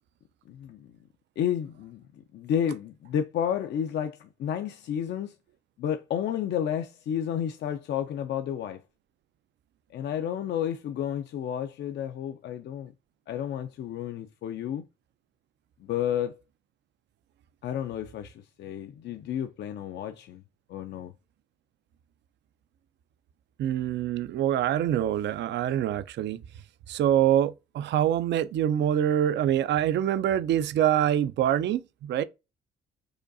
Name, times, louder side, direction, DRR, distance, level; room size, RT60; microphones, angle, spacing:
voice 1, 0.5-0.9 1.4-2.0 2.3-5.4 5.8-8.8 9.9-12.9 13.3-14.8 15.8-16.4 17.6-20.4 20.7-21.1, left 9 dB, 60° left, 0.4 m, -31 dB
voice 2, 23.6-26.4 26.9-32.2, right 11 dB, 65° right, 0.4 m, -25 dB
4.9 x 2.3 x 2.5 m
cardioid pair, 90°, 20 cm